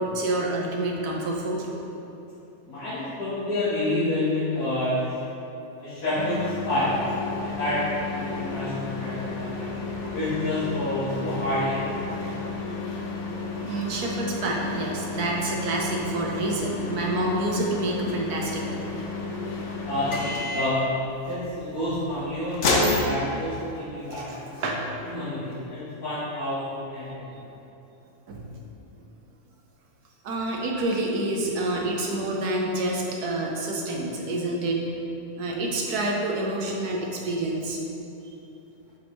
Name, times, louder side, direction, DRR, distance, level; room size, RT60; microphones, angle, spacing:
voice 1, 0.0-1.7 9.5-10.2 13.6-18.8 24.0-25.0 28.3-28.5 30.2-34.8 35.4-37.8, right 2 dB, 90° right, -1 dB, 1.4 m, -28 dB
voice 2, 2.7-5.2 5.8-6.9 7.4-7.8 8.1-9.8 10.1-12.1 19.8-20.8 21.2-24.5 25.1-27.4, left 1 dB, 80° left, -13 dB, 2.1 m, -29 dB
sound 1, 6.1-23.9, left 2 dB, 60° left, 1.0 m, -31 dB
7.4 x 5.2 x 3.1 m, 2.9 s
omnidirectional pair, 1.6 m